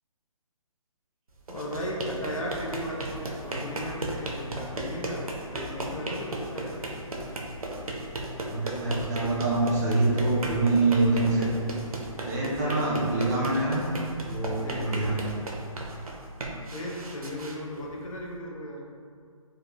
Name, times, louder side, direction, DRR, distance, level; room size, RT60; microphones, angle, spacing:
sound 1, 1.4-18.3, right 1 dB, 85° right, 0.5 m, -36 dB
voice 1, 1.5-5.2 5.5-7.1 14.5-15.0 16.7-18.8, equal, 70° left, -3 dB, 0.7 m, -36 dB
voice 2, 8.4-11.5 12.2-13.8 14.2-15.2, right 2 dB, 30° right, -5 dB, 0.5 m, -25 dB
3.5 x 2.3 x 2.2 m, 2.2 s
figure-of-eight pair, 145°, 18 cm